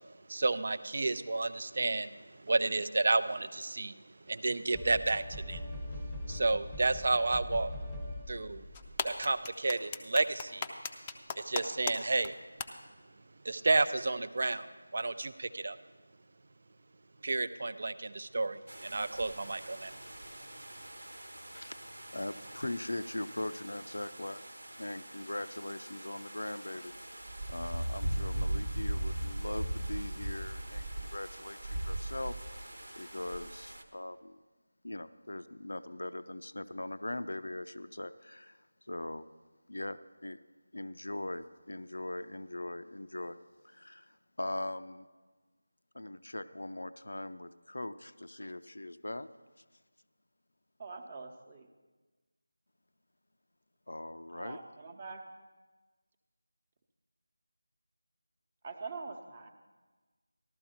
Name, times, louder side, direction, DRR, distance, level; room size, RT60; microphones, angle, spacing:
voice 1, 0.3-5.6 6.3-7.7 8.3-8.6 9.0-10.7 11.4-12.3 13.4-15.8 17.2-19.9, right 3 dB, 50° right, 13 dB, 0.5 m, -31 dB
sound 1, 4.7-9.2, left 1 dB, ahead, 0.9 m, -41 dB
sound 2, 8.7-12.0 12.2-12.3 12.6-12.7, left 6 dB, 15° left, 0.5 m, -35 dB
sound 3, 18.7-33.8, right 1 dB, 75° right, 1.2 m, -39 dB
voice 2, 21.4-21.8 22.1-24.4 24.8-26.9 27.5-32.4 33.0-34.4 34.8-39.3 39.7-40.4 40.7-43.4 43.6-45.1 45.9-49.3 53.9-54.6, left 1 dB, 75° left, 12 dB, 0.5 m, -40 dB
voice 3, 50.8-51.7 54.3-55.2 58.6-59.5, right 4 dB, 30° right, 5 dB, 0.9 m, -44 dB
14.0 x 12.5 x 4.4 m, 1.3 s
figure-of-eight pair, 165°, 0 cm